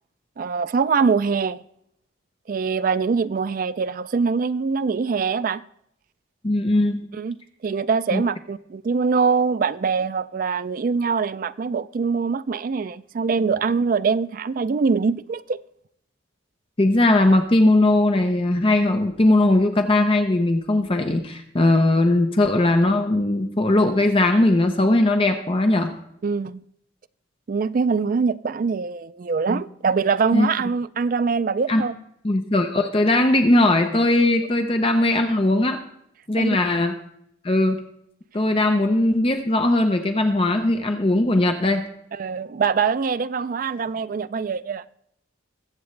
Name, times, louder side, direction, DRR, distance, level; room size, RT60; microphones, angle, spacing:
voice 1, 0.4-1.6 2.5-5.6 7.1-7.4 7.6-15.6 26.2-26.6 27.5-31.9 36.4-36.5 42.1-44.8, right 5 dB, 45° right, 0.3 m, -23 dB
voice 2, 6.4-7.0 8.1-8.2 16.8-25.9 29.5-29.6 30.3-30.5 31.7-31.8 32.2-35.8 36.3-37.0 37.4-37.8 38.3-41.9, left 2 dB, 30° left, 0.7 m, -19 dB
21.5 x 7.9 x 3.2 m
head